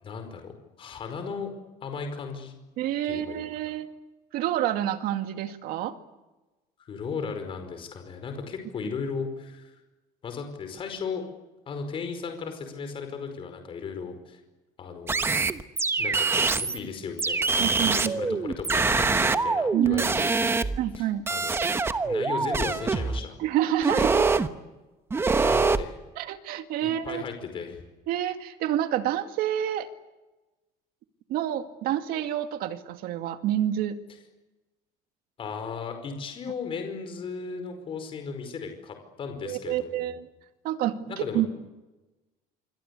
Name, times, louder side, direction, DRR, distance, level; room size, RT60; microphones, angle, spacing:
voice 1, 0.0-1.5 1.8-2.5 3.0-3.7 6.9-9.7 10.2-11.2 11.7-14.4 14.8-15.3 16.0-17.5 17.9-21.7 22.0-23.4 25.4-26.0 26.8-27.8 35.4-40.1 41.1-41.4, left 5 dB, 35° left, 6 dB, 5.0 m, -36 dB
voice 2, 2.8-3.9 4.3-6.0 17.6-18.4 19.7-20.0 20.8-21.3 23.4-24.3 25.4-25.5 26.2-27.2 28.1-29.9 31.3-34.0 39.4-40.3 40.6-41.7, right 11 dB, 65° right, 8 dB, 2.2 m, -28 dB
sound 1, 15.1-16.8 17.2-21.0 21.3-23.2 23.8-24.5 25.1-25.8, right 4 dB, 15° right, 1.1 m, -24 dB
26.5 x 24.5 x 8.4 m, 1.1 s
cardioid pair, 165°, 16 cm